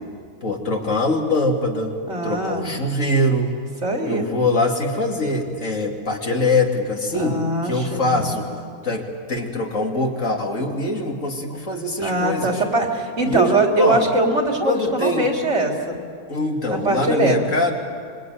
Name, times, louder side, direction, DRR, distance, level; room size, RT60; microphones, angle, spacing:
voice 1, 0.4-1.9 2.2-3.5 4.0-8.5 8.8-12.6 13.2-14.1 14.6-15.3 16.3-17.7, left 2 dB, 60° left, 1 dB, 3.1 m, -23 dB
voice 2, 2.1-2.7 3.8-4.3 7.1-8.5 12.0-16.0 16.7-17.4 17.6-17.7, right 2 dB, 55° right, 1 dB, 3.2 m, -22 dB
25.5 x 22.5 x 9.3 m, 2.2 s
omnidirectional pair, 1.5 m